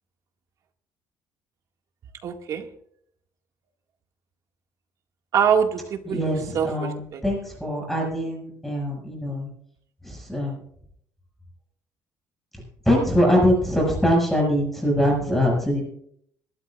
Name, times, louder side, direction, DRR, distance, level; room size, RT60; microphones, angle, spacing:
voice 1, 2.2-2.6 5.3-7.2, right 7 dB, 55° right, 3 dB, 2.1 m, -24 dB
voice 2, 6.0-9.5 10.0-10.6 12.8-15.8, equal, 5° left, -2 dB, 6.6 m, -23 dB
25.5 x 12.5 x 2.5 m, 0.67 s
cardioid pair, 130°, 7 cm